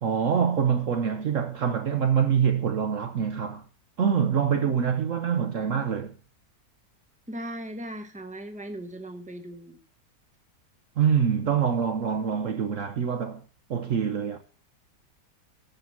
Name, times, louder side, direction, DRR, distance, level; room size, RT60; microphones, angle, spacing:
voice 1, 0.0-3.6 4.0-6.1 11.0-13.4 13.7-14.4, right 7 dB, 55° right, 1.1 m, -25 dB
voice 2, 7.3-9.8, right 1 dB, 5° right, 0.7 m, -38 dB
12.5 x 5.3 x 7.2 m
omnidirectional pair, 1.8 m